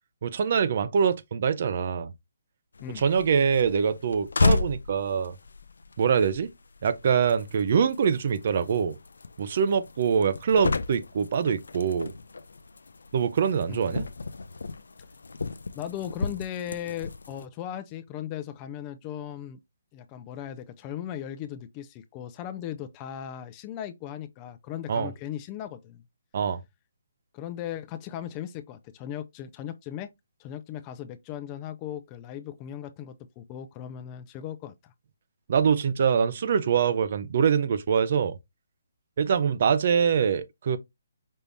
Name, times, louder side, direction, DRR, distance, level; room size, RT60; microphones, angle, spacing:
voice 1, 0.2-2.1 3.0-5.3 6.0-6.5 6.8-9.0 9.4-12.1 13.1-14.1 24.9-25.1 26.3-26.6 35.5-38.4 39.2-40.8, right 6 dB, 50° right, 0.7 m, -24 dB
sound 1, 2.7-17.4, left 3 dB, 80° left, 0.5 m, -33 dB
voice 2, 13.7-14.0 15.7-19.6 19.9-26.0 27.3-30.1 30.4-34.9, left 10 dB, 25° left, 0.5 m, -37 dB
5.4 x 3.3 x 2.7 m
hypercardioid pair, 150°, 0 cm